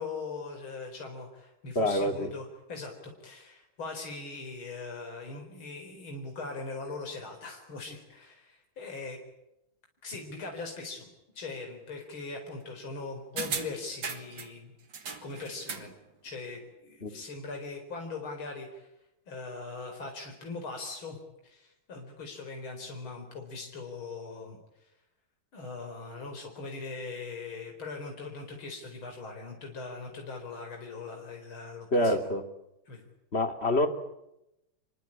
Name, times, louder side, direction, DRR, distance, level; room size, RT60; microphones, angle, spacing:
voice 1, 0.0-9.2 10.0-11.1 11.4-14.7 15.2-15.9 16.2-18.9 19.3-21.2 21.4-24.9 25.5-32.3 32.9-33.1, left 3 dB, 80° left, 2 dB, 5.2 m, -40 dB
voice 2, 1.7-2.3 17.0-17.1 31.9-32.4 33.3-33.9, left 1 dB, 30° left, 7 dB, 2.9 m, -26 dB
sound 1, 13.4-14.5 14.9-16.0 16.3-16.4, right 5 dB, 65° right, 3.2 m, -37 dB
27.5 x 24.0 x 8.8 m, 0.88 s
omnidirectional pair, 2.2 m